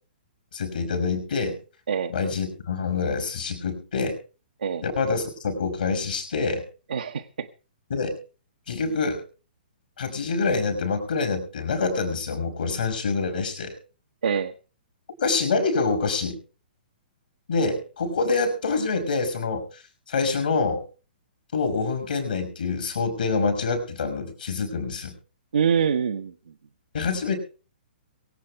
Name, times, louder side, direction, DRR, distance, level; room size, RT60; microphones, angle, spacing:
voice 1, 0.5-1.6 2.1-4.2 4.8-6.6 7.9-8.2 8.7-9.2 10.0-13.7 15.2-16.4 17.5-19.6 20.1-20.8 21.5-25.2 26.9-27.4, left 4 dB, 65° left, 6 dB, 5.7 m, -26 dB
voice 2, 6.9-7.5 14.2-14.5 25.5-26.3, right 7 dB, 70° right, 5 dB, 1.0 m, -24 dB
23.0 x 8.6 x 4.6 m, 0.36 s
figure-of-eight pair, 120°, 5 cm